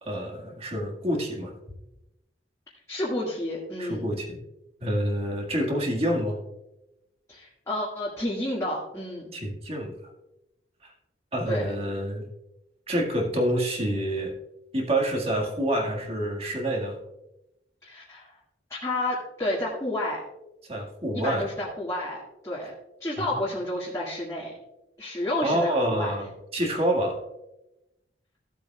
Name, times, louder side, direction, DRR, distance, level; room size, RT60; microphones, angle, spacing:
voice 1, 0.0-1.5 3.8-4.4 4.8-6.4 9.3-9.9 10.8-10.9 11.3-12.2 12.9-14.3 14.7-17.0 20.7-21.5 23.2-23.3 25.4-27.2, right 1 dB, 35° right, 0 dB, 1.8 m, -27 dB
voice 2, 2.9-4.0 7.3-9.3 11.5-11.7 17.8-18.3 18.7-20.2 21.1-22.7 23.0-24.5 25.0-26.1, left 1 dB, 20° left, -6 dB, 1.8 m, -30 dB
15.0 x 8.0 x 2.3 m, 0.92 s
head